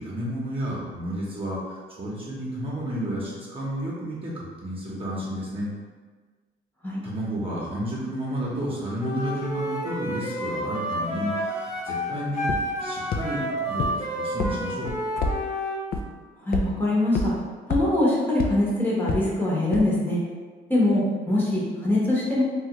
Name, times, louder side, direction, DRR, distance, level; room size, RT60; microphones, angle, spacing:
voice 1, 0.0-5.7 7.0-12.5 12.8-14.9, right 1 dB, 30° right, -7 dB, 0.9 m, -31 dB
Wind instrument woodwind instrument, 9.0-15.8, equal, 35° left, 1.0 m, -30 dB
sound 1, 12.5-12.6 13.1-13.2 13.8-13.9 14.4-14.5 14.9-15.3 15.9-16.0 16.5-16.6 17.1-17.2 17.7-17.8 18.4-18.5 19.1-19.2 19.7-19.8, left 4 dB, 50° left, 0.4 m, -25 dB
voice 2, 16.4-17.3 17.7-20.2 20.7-22.4, left 1 dB, 10° left, -7 dB, 0.9 m, -23 dB
3.1 x 2.3 x 2.9 m, 1.4 s
cardioid pair, 90°, 20 cm